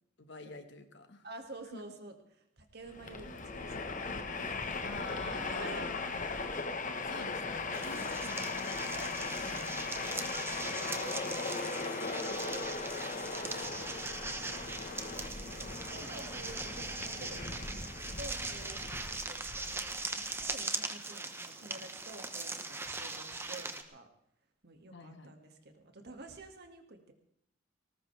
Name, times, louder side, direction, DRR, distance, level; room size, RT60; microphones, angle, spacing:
voice 1, 0.2-1.3 1.6-1.8 3.2-3.6 4.8-6.3 7.0-10.1 24.9-25.3, left 3 dB, 65° left, 8 dB, 1.6 m, -47 dB
voice 2, 1.2-2.1 2.6-5.8 8.0-8.5 10.4-12.8 13.1-14.5 15.4-17.6 18.2-18.8 19.1-24.1 24.6-27.1, right 2 dB, 55° right, 5 dB, 2.2 m, -50 dB
Train, 2.9-20.5, left 3 dB, 40° left, 1.3 m, -39 dB
sound 1, 6.9-17.0, equal, 10° left, 2.1 m, -54 dB
sound 2, 7.7-23.8, right 3 dB, 10° right, 1.0 m, -40 dB
19.5 x 19.0 x 3.4 m, 0.73 s
head